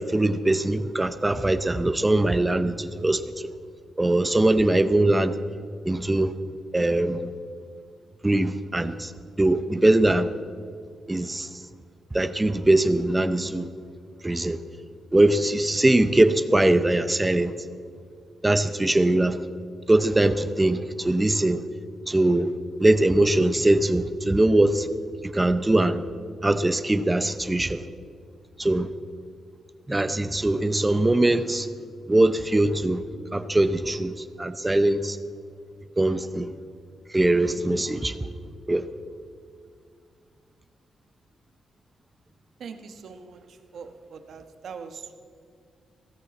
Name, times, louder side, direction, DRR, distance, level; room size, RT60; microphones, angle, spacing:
voice 1, 0.0-3.5 4.0-5.3 5.8-6.3 6.7-7.3 8.2-9.1 9.4-10.3 11.1-11.5 12.1-13.7 14.2-14.6 15.1-17.5 18.4-19.4 19.9-21.6 22.1-22.5 22.8-24.9 25.2-26.0 26.4-27.8 28.6-28.9 29.9-31.7 32.1-33.0 33.3-35.2 36.0-36.5 37.1-38.2 38.7-38.8, right 1 dB, 15° right, 12 dB, 0.6 m, -21 dB
voice 2, 42.6-43.4 43.7-45.2, right 6 dB, 65° right, 7 dB, 1.1 m, -41 dB
16.5 x 14.0 x 4.2 m, 2.3 s
cardioid pair, 130°, 0 cm